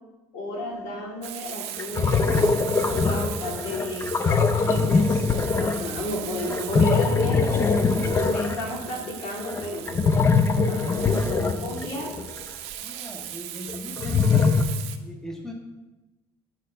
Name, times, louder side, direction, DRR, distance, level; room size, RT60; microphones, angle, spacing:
voice 1, 0.3-4.1 4.7-5.2 5.5-9.9 10.7-12.1, left 1 dB, 75° left, -2 dB, 2.0 m, -33 dB
sound 1, 1.2-1.3 1.8-12.4 13.7-14.6, left 4 dB, 25° left, 0.4 m, -22 dB
Frying (food), 1.2-15.0, right 12 dB, 85° right, 0.6 m, -38 dB
voice 2, 12.8-14.6 15.0-15.5, left 1 dB, 5° left, 1 dB, 0.8 m, -39 dB
6.5 x 4.2 x 5.4 m, 1.1 s
cardioid pair, 135°, 11 cm